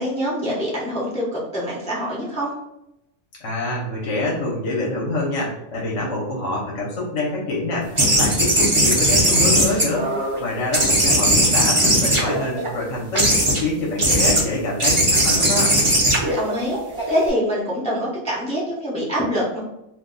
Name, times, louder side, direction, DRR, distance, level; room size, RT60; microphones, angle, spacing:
voice 1, 0.0-2.5 16.3-16.8 17.1-19.6, equal, 5° left, -5 dB, 0.6 m, -25 dB
voice 2, 3.4-10.1 10.4-13.3 13.6-15.8, left 2 dB, 65° left, -3 dB, 1.1 m, -26 dB
sound 1, 8.0-10.4 10.7-12.7 13.1-13.6 14.0-14.4 14.8-17.3, right 1 dB, 30° right, 0.7 m, -18 dB
2.6 x 2.2 x 3.8 m, 0.84 s
omnidirectional pair, 1.4 m